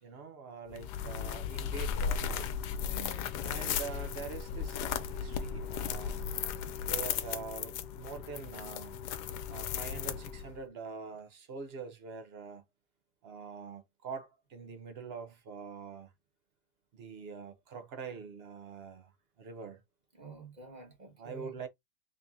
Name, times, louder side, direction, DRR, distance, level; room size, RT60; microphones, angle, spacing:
voice 1, 0.0-2.5 3.4-6.3 6.9-9.0 9.5-12.6 13.2-16.1 16.9-19.1 19.4-19.8 21.2-21.7, right 5 dB, 50° right, 0.8 m, -44 dB
sound 1, 0.7-10.6, left 7 dB, 85° left, 1.2 m, -36 dB
voice 2, 2.8-3.8 20.1-21.6, right 2 dB, 30° right, 1.3 m, -49 dB
3.8 x 2.7 x 3.6 m
omnidirectional pair, 1.7 m